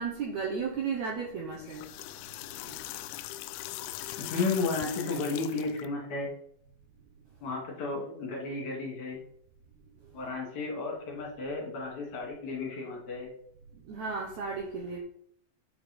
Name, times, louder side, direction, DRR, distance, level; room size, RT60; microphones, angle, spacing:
voice 1, 0.0-1.9 2.6-2.7 13.9-15.0, right 5 dB, 70° right, -1 dB, 1.9 m, -34 dB
sound 1, 1.5-5.9, left 15 dB, 85° left, 2.4 m, -41 dB
voice 2, 4.2-6.3 7.4-9.2 10.1-13.3, left 3 dB, 55° left, -2 dB, 3.5 m, -33 dB
9.2 x 4.7 x 5.3 m, 0.66 s
omnidirectional pair, 4.5 m